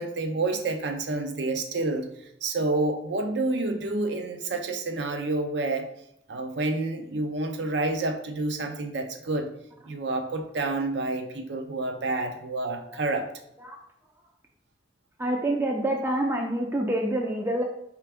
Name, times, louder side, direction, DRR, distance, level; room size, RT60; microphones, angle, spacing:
voice 1, 0.0-2.1 2.4-5.9 6.3-9.5 9.8-13.3, right 2 dB, 65° right, 6 dB, 0.6 m, -29 dB
voice 2, 15.2-17.6, right 1 dB, 15° right, 2 dB, 0.4 m, -26 dB
4.6 x 3.3 x 3.5 m, 0.77 s
head